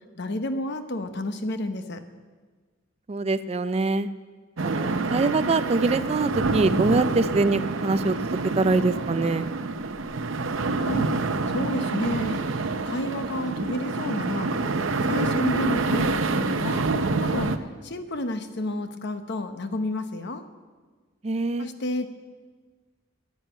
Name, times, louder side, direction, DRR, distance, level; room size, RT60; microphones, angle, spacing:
voice 1, 0.1-2.0 10.8-11.1 11.5-14.5 15.0-16.9 17.2-20.4 21.6-22.1, left 1 dB, 60° left, 8 dB, 1.0 m, -31 dB
voice 2, 3.1-4.1 4.6-9.5 21.2-21.7, right 3 dB, 30° right, 13 dB, 0.4 m, -24 dB
sound 1, 4.6-17.6, right 3 dB, 70° right, 0.7 m, -27 dB
10.5 x 10.0 x 9.0 m, 1.5 s
head